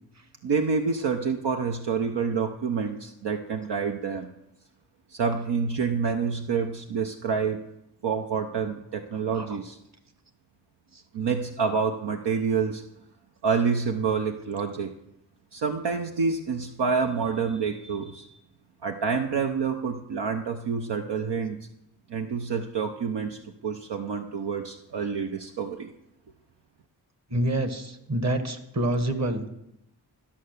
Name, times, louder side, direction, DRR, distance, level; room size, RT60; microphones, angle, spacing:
voice 1, 0.4-4.3 5.1-7.6 8.0-9.8 11.1-12.8 13.4-14.9 15.5-18.3 18.8-21.6 22.1-25.9, right 5 dB, 70° right, 4 dB, 0.8 m, -28 dB
voice 2, 27.3-29.6, right 1 dB, 40° right, 9 dB, 1.5 m, -27 dB
13.0 x 5.7 x 6.6 m, 0.84 s
cardioid pair, 45°, 43 cm